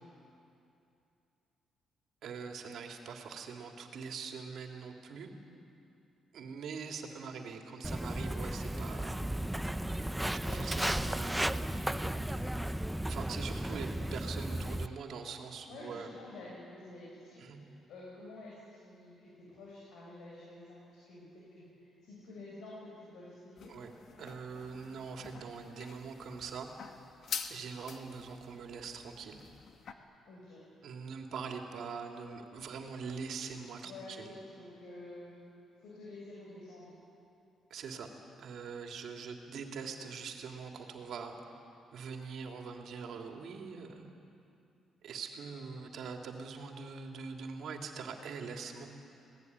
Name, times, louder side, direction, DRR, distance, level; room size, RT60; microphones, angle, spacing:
voice 1, 2.2-5.3 6.3-9.2 10.3-11.4 13.1-16.1 17.4-17.6 23.7-26.7 27.5-29.4 30.8-34.3 37.7-38.1 38.4-41.4 41.9-44.1 45.0-48.9, right 5 dB, 70° right, 2 dB, 3.0 m, -43 dB
Walk footsteps, 7.8-14.9, right 1 dB, 5° right, 0.7 m, -34 dB
voice 2, 10.3-12.5 15.7-23.7 30.2-30.6 33.8-35.4 35.8-36.9, left 2 dB, 80° left, -6 dB, 7.6 m, -50 dB
sound 1, 23.6-29.9, left 6 dB, 60° left, 1.8 m, -46 dB
26.5 x 19.0 x 9.7 m, 2.7 s
cardioid pair, 90°, 0 cm